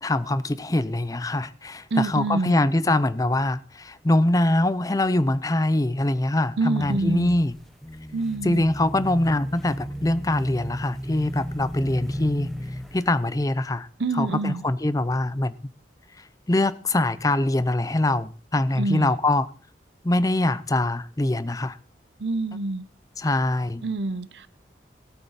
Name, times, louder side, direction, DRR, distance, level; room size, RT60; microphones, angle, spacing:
voice 1, 0.0-7.6 8.4-12.5 12.9-13.9 14.1-15.5 16.5-19.5 20.0-21.8 23.2-23.8, left 1 dB, 20° left, 0.5 m, -23 dB
voice 2, 1.9-2.6 6.6-7.3 8.1-8.7 14.0-14.6 18.8-19.1 22.2-22.8 23.8-24.5, right 2 dB, 80° right, 0.7 m, -26 dB
sound 1, 6.8-13.2, equal, ahead, 1.0 m, -34 dB
18.0 x 8.5 x 4.1 m
head